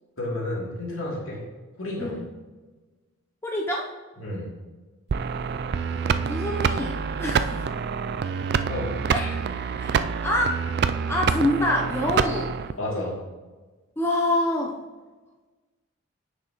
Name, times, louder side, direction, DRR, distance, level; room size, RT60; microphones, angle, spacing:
voice 1, 0.2-1.4 1.8-2.1 4.2-4.5 8.7-8.9 12.8-13.2, left 1 dB, 70° left, -4 dB, 2.6 m, -30 dB
voice 2, 3.4-3.9 6.2-7.7 9.1-9.4 9.8-10.6 11.1-12.5 14.0-14.8, left 1 dB, 10° left, -1 dB, 0.6 m, -26 dB
sound 1, 5.1-12.7, right 6 dB, 50° right, 0.3 m, -26 dB
9.9 x 6.3 x 3.0 m, 1.3 s
head